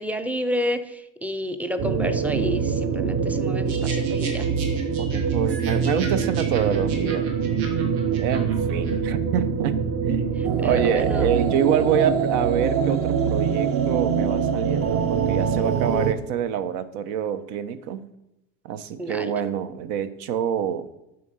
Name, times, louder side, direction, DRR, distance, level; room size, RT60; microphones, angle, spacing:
voice 1, 0.0-4.5 10.4-11.3 19.0-19.3, equal, 5° right, 10 dB, 0.6 m, -30 dB
sound 1, 1.8-16.1, right 6 dB, 35° right, 0.9 m, -24 dB
sound 2, 3.7-8.9, right 4 dB, 80° right, 2.4 m, -39 dB
voice 2, 5.0-7.3 8.2-18.1 18.6-20.9, right 9 dB, 65° right, 13 dB, 1.0 m, -26 dB
9.3 x 5.9 x 6.4 m, 0.92 s
cardioid pair, 140°, 38 cm